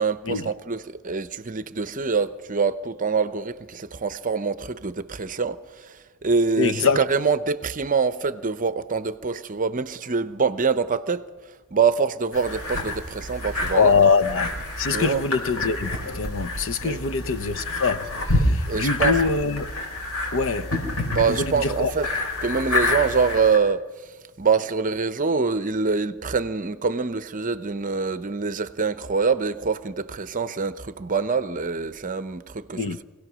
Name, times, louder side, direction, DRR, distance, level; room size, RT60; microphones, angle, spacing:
voice 1, 0.0-13.9 14.9-15.2 16.8-17.0 18.7-19.2 21.1-22.1 22.4-33.0, right 5 dB, 35° right, 0.7 m, -25 dB
voice 2, 6.6-7.0 13.7-14.5 14.8-19.7 20.3-20.8 21.3-21.9 32.7-33.0, left 5 dB, 60° left, 0.8 m, -23 dB
sound 1, 12.3-23.6, left 2 dB, 80° left, 5.0 m, -28 dB
25.5 x 17.5 x 6.2 m
head